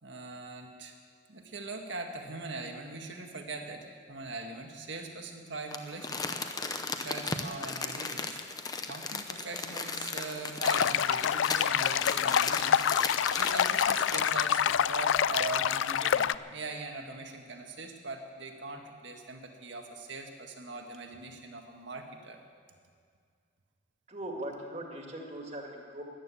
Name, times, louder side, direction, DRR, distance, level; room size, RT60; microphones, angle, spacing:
voice 1, 0.0-1.0 1.3-6.4 7.0-8.4 8.9-12.8 13.4-22.4, right 3 dB, 70° right, 3 dB, 1.8 m, -41 dB
Crumpling crinkling, 5.7-14.4 14.8-14.9, left 4 dB, 20° left, 0.8 m, -36 dB
sound 1, 10.6-16.3, left 9 dB, 80° left, 0.4 m, -27 dB
voice 2, 24.1-26.0, right 1 dB, 35° right, 1 dB, 2.1 m, -40 dB
13.5 x 11.5 x 8.4 m, 2.1 s
head